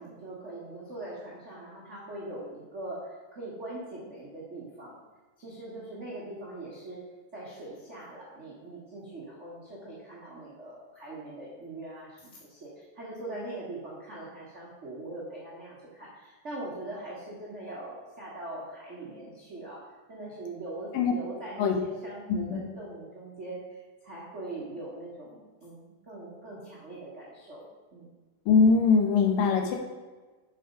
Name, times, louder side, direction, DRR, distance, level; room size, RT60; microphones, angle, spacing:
voice 1, 0.0-5.0 5.4-7.0 7.3-19.8 20.1-27.7 27.9-28.1, right 2 dB, 85° right, -7 dB, 0.6 m, -41 dB
voice 2, 28.5-29.8, left 5 dB, 80° left, 3 dB, 2.5 m, -21 dB
6.5 x 5.1 x 5.1 m, 1.3 s
omnidirectional pair, 3.9 m